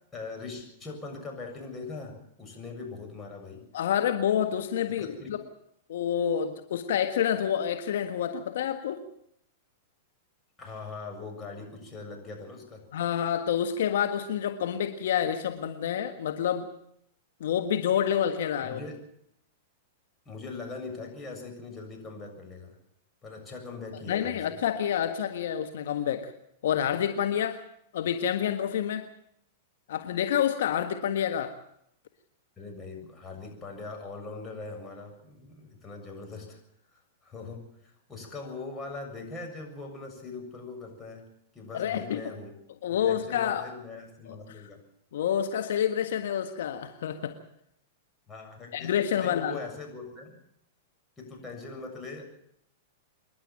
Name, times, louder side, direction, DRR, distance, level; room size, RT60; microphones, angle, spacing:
voice 1, 0.1-3.7 4.9-5.3 10.6-12.8 18.6-19.0 20.3-22.8 23.2-24.6 32.6-36.6 36.9-41.2 41.5-42.6 42.9-44.8 48.3-50.3 51.2-52.2, left 3 dB, 20° left, 2 dB, 7.2 m, -41 dB
voice 2, 3.7-5.4 5.9-9.0 12.9-16.7 17.4-18.8 24.1-26.3 26.6-27.6 27.9-29.1 29.9-31.6 41.7-42.2 42.8-43.7 45.1-47.4 48.7-49.6, left 9 dB, 70° left, 8 dB, 1.6 m, -28 dB
26.5 x 11.5 x 8.8 m, 0.73 s
hypercardioid pair, 115°, 0 cm